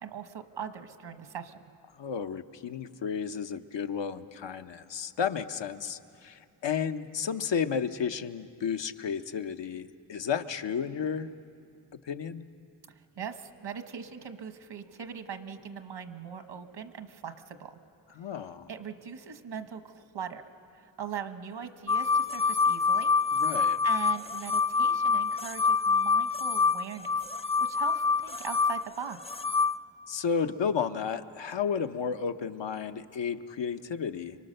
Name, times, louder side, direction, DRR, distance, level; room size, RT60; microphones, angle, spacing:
voice 1, 0.0-1.6 12.9-17.7 18.7-20.4 20.7-23.1 23.8-27.2 27.6-29.4, right 7 dB, 80° right, 8 dB, 1.3 m, -40 dB
voice 2, 2.0-11.3 11.9-12.4 18.1-18.7 23.3-23.8 30.1-34.4, left 7 dB, 80° left, 8 dB, 0.9 m, -32 dB
sound 1, 21.9-29.8, left 5 dB, 15° left, 0.5 m, -26 dB
25.5 x 23.5 x 6.6 m, 2.5 s
cardioid pair, 65°, 43 cm